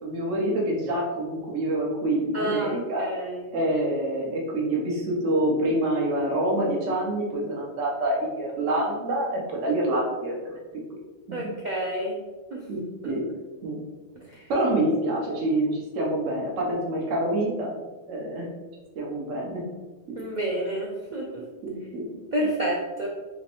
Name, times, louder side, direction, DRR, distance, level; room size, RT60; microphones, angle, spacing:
voice 1, 0.0-10.5 11.4-11.5 12.7-13.3 13.6-13.8 14.5-17.7 18.1-18.5 19.0-19.6 20.1-20.2 21.6-22.1, right 1 dB, 80° right, -2 dB, 1.1 m, -26 dB
voice 2, 2.3-3.5 11.3-12.2 12.5-12.6 13.0-13.2 14.3-14.4 20.2-21.4 22.3-23.1, right 1 dB, 60° right, -2 dB, 0.5 m, -29 dB
3.3 x 3.0 x 2.9 m, 1.2 s
omnidirectional pair, 1.2 m